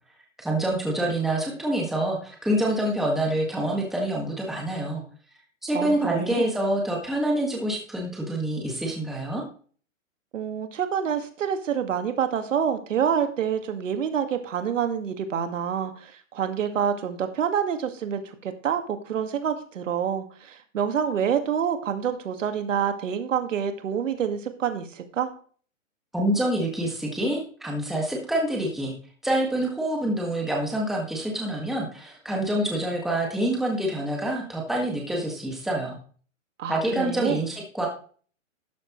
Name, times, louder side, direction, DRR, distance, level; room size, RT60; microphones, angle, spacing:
voice 1, 0.4-5.0 5.6-9.4 26.1-28.9 29.2-36.0 36.7-37.9, right 1 dB, ahead, -1 dB, 1.8 m, -26 dB
voice 2, 5.7-6.5 10.3-25.3 36.6-37.4, right 8 dB, 70° right, 8 dB, 1.9 m, -27 dB
12.5 x 9.4 x 3.1 m, 0.44 s
hypercardioid pair, 155°, 39 cm